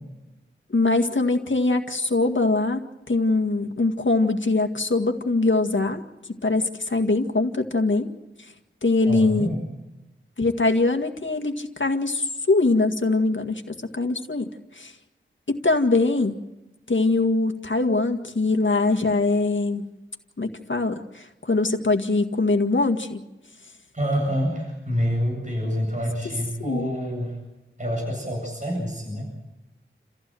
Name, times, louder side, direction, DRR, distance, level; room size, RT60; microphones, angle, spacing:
voice 1, 0.7-6.0 6.4-8.1 8.8-9.5 10.4-14.5 14.8-14.9 15.5-16.4 16.9-19.9 20.4-23.2 26.6-26.9, left 3 dB, 65° left, 5 dB, 2.0 m, -22 dB
voice 2, 9.1-9.6 23.9-27.4 27.8-29.5, equal, 35° right, 0 dB, 8.0 m, -27 dB
29.5 x 15.0 x 7.9 m, 1.0 s
wide cardioid pair, 55°, 21 cm